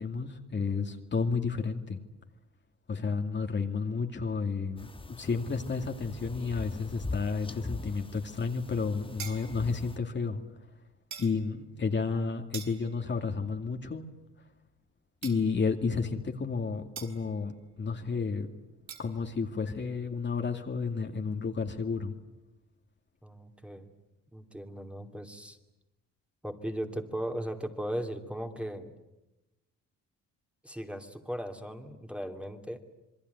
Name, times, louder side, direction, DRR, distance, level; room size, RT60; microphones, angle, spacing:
voice 1, 0.0-2.0 2.9-10.4 11.2-14.1 15.2-18.5 19.0-22.1, left 4 dB, 35° left, 5 dB, 2.4 m, -31 dB
sound 1, 4.8-10.0, left 3 dB, 15° left, 1.3 m, -42 dB
sound 2, 9.2-9.8 11.1-11.4 12.5-13.1 15.2-15.7 17.0-17.3 18.9-19.1, right 8 dB, 70° right, 4.2 m, -44 dB
voice 2, 23.2-23.9 24.3-25.6 26.4-28.9 30.6-32.8, equal, 5° right, 5 dB, 2.8 m, -37 dB
27.5 x 21.5 x 9.5 m, 0.98 s
cardioid pair, 90°, 30 cm